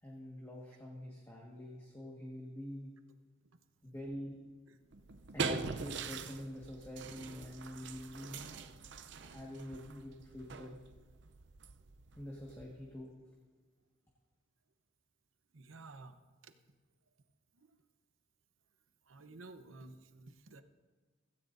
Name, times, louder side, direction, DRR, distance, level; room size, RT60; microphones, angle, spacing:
voice 1, 0.0-2.9 3.8-4.4 5.3-8.4 9.2-10.8 12.1-13.1, equal, 15° left, -3 dB, 1.6 m, -46 dB
sound 1, 4.9-13.0, right 4 dB, 60° right, 0.6 m, -43 dB
voice 2, 15.5-16.1 16.4-16.5 17.6-17.7 19.1-20.6, right 3 dB, 85° right, 8 dB, 0.9 m, -53 dB
16.5 x 16.5 x 2.6 m, 1.4 s
head